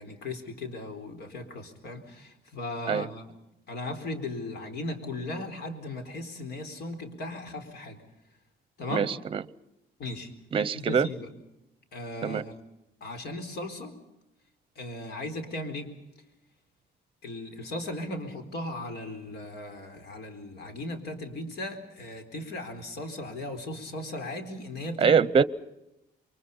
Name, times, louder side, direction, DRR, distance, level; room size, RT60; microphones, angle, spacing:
voice 1, 0.0-3.3 3.7-8.0 8.8-9.1 10.0-10.3 10.7-11.3 11.9-12.5 13.0-13.9 14.8-15.9 17.2-25.2, left 2 dB, 75° left, 7 dB, 4.2 m, -37 dB
voice 2, 8.9-9.4 10.5-11.1 12.2-12.4 25.0-25.4, right 6 dB, 30° right, 18 dB, 0.8 m, -23 dB
28.5 x 23.5 x 5.6 m, 0.90 s
cardioid pair, 150°, 17 cm